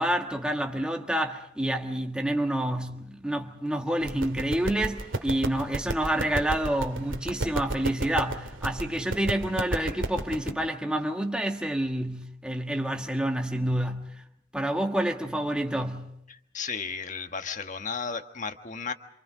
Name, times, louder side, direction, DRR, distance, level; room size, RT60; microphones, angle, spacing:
voice 1, 0.0-14.1 14.5-16.1, right 1 dB, 5° right, 1.5 m, -28 dB
sound 1, 4.0-10.5, right 1 dB, 85° right, 2.2 m, -33 dB
voice 2, 16.3-18.9, left 5 dB, 40° left, 1.4 m, -34 dB
28.5 x 27.0 x 5.0 m
head